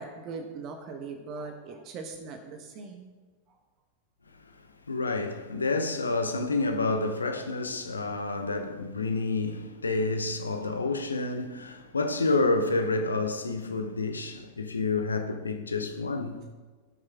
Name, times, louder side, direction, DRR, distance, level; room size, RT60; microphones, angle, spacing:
voice 1, 0.0-3.1, right 4 dB, 35° right, 1.1 m, -40 dB
voice 2, 4.9-16.4, left 3 dB, 75° left, 0.9 m, -29 dB
17.5 x 6.5 x 3.6 m
figure-of-eight pair, 90°, 0 cm